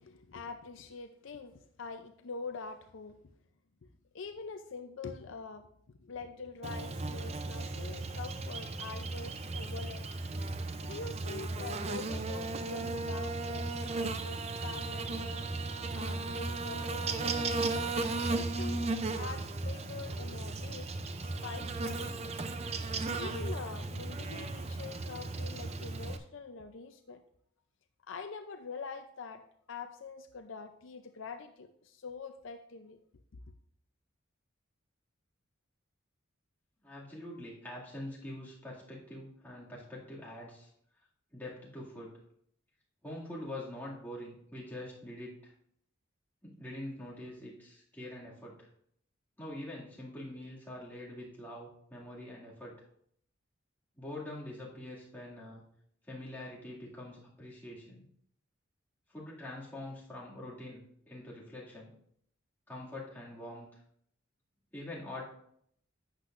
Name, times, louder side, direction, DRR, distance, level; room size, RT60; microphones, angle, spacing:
voice 1, 0.0-3.2 4.1-5.7 6.0-10.0 10.8-15.5 15.9-17.4 18.3-18.8 19.1-20.9 21.2-22.3 23.1-27.2 28.1-29.4 29.7-33.0, left 4 dB, 65° left, 7 dB, 0.5 m, -44 dB
Buzz, 6.6-26.2, right 3 dB, 30° right, 0.5 m, -36 dB
voice 2, 36.8-40.7 41.3-42.2 43.0-45.5 46.4-48.7 49.4-52.8 54.0-55.6 56.1-58.0 59.1-61.9 62.7-63.8 64.7-65.2, left 1 dB, 10° left, -6 dB, 2.2 m, -44 dB
11.5 x 8.2 x 2.5 m, 0.68 s
head